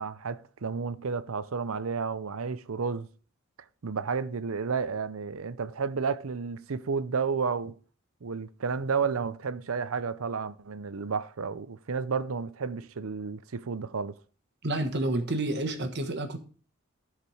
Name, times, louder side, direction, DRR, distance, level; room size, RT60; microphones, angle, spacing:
voice 1, 0.0-3.1 3.8-7.7 8.2-14.1, right 5 dB, 80° right, 0.6 m, -31 dB
voice 2, 14.6-16.4, right 1 dB, 55° right, 1.4 m, -29 dB
13.5 x 4.9 x 4.9 m
head